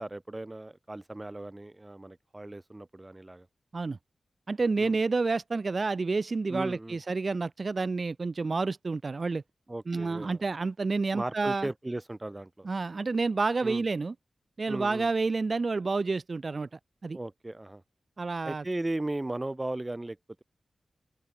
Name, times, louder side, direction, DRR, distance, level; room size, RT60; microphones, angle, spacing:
voice 1, 0.0-3.5 4.8-5.0 6.5-7.0 9.7-10.4 11.1-12.7 13.6-13.8 14.7-15.1 17.1-17.8 18.4-20.4, right 2 dB, 25° right, 7.2 m, -36 dB
voice 2, 4.5-9.4 9.9-11.7 12.6-14.1 14.6-17.2 18.2-18.6, right 3 dB, 50° right, 3.1 m, -29 dB
open air
cardioid pair, 60°, 0 cm